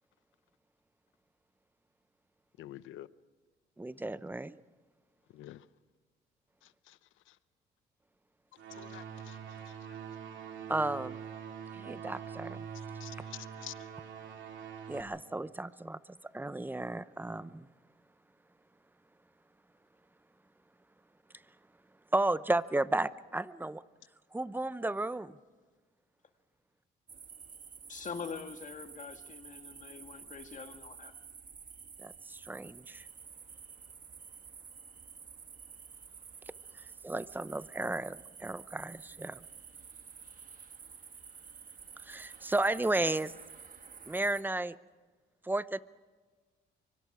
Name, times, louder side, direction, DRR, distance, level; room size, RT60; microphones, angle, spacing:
voice 1, 2.6-3.1 5.3-5.6 8.8-9.4 13.0-13.7, left 14 dB, 85° left, 0.7 m, -47 dB
voice 2, 3.8-4.5 10.7-11.2 11.7-12.6 14.9-16.0 16.3-17.7 22.1-23.8 24.3-25.3 32.0-33.0 37.0-39.4 42.0-43.3 44.1-44.8 45.4-45.8, right 2 dB, 10° right, 0.7 m, -33 dB
sound 1, 8.6-15.0, right 7 dB, 75° right, 2.8 m, -44 dB
sound 2, 27.1-44.4, right 6 dB, 45° right, 1.4 m, -51 dB
voice 3, 27.9-31.1, left 5 dB, 40° left, 1.7 m, -44 dB
24.5 x 24.5 x 4.9 m
cardioid pair, 90°, 20 cm